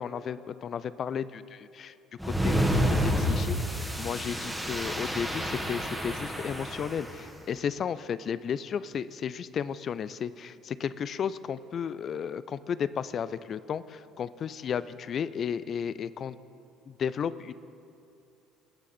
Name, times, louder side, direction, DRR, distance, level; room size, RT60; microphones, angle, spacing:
voice 1, 0.0-1.9 2.2-16.4 16.9-17.5, left 7 dB, 45° left, 16 dB, 0.4 m, -34 dB
sound 1, 2.2-7.1, equal, ahead, 1.7 m, -29 dB
20.0 x 7.1 x 4.3 m, 2.6 s
figure-of-eight pair, 55°, 0 cm